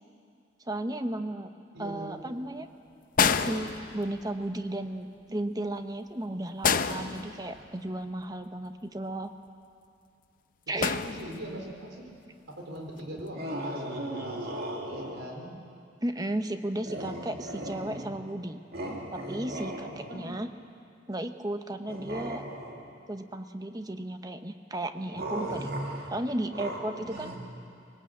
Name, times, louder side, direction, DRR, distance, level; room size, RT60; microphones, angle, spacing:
voice 1, 0.6-1.5 1.8-2.7 3.3-9.3 10.7-11.0 16.0-18.6 19.1-20.5 21.1-22.4 23.1-25.7 26.1-27.3, right 1 dB, 20° right, 8 dB, 0.9 m, -34 dB
voice 2, 1.7-2.4 10.7-12.1 12.5-15.5 20.1-20.3 26.9-27.3, right 1 dB, 75° right, 0 dB, 4.3 m, -41 dB
sound 1, 3.2-4.4 6.6-7.9 10.8-11.7 13.0-13.2, left 6 dB, 45° left, 0.6 m, -28 dB
sound 2, 13.3-15.4 16.8-18.3 18.7-20.4 21.9-23.0 25.1-27.4, right 1 dB, 55° right, 2.4 m, -37 dB
20.5 x 18.5 x 8.5 m, 2.4 s
head